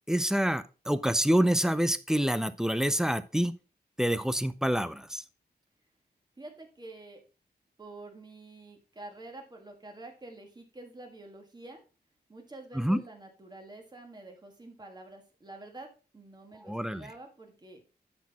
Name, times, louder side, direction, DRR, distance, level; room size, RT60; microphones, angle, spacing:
voice 1, 0.1-3.5 4.0-5.2 12.7-13.0 16.6-17.1, equal, 5° right, 14 dB, 0.4 m, -27 dB
voice 2, 6.4-7.2 7.8-11.8 12.3-17.8, right 2 dB, 25° right, 3 dB, 1.7 m, -48 dB
10.5 x 4.2 x 4.1 m, 0.34 s
wide cardioid pair, 145°, 17 cm